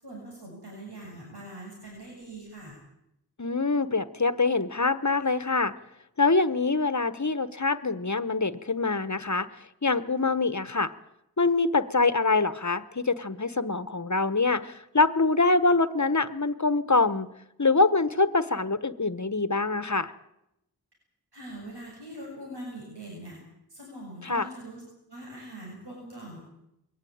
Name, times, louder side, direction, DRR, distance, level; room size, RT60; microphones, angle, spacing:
voice 1, 0.0-2.8 21.3-23.4 23.7-24.8 25.1-26.4, right 1 dB, 85° right, -2 dB, 7.3 m, -42 dB
voice 2, 3.4-5.7 6.2-9.5 9.8-10.9 11.4-17.3 17.6-20.1 24.2-24.5, left 3 dB, 45° left, 14 dB, 1.2 m, -24 dB
22.5 x 17.0 x 8.8 m, 0.83 s
wide cardioid pair, 50°, 40 cm